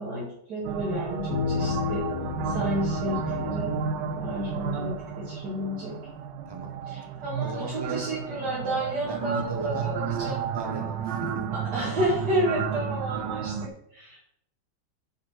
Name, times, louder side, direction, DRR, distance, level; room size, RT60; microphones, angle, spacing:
voice 1, 0.0-2.1 2.4-3.7 4.2-5.9 6.9-10.4 11.5-14.2, equal, 60° right, -6 dB, 2.5 m, -31 dB
sound 1, 0.6-13.7, right 7 dB, 80° right, 1.3 m, -32 dB
sound 2, 1.3-5.7, left 7 dB, 70° left, 1.2 m, -33 dB
voice 2, 7.4-8.1 9.1-9.9 10.2-11.4, right 2 dB, 20° right, 5 dB, 0.7 m, -37 dB
8.4 x 5.4 x 4.6 m, 0.75 s
omnidirectional pair, 2.0 m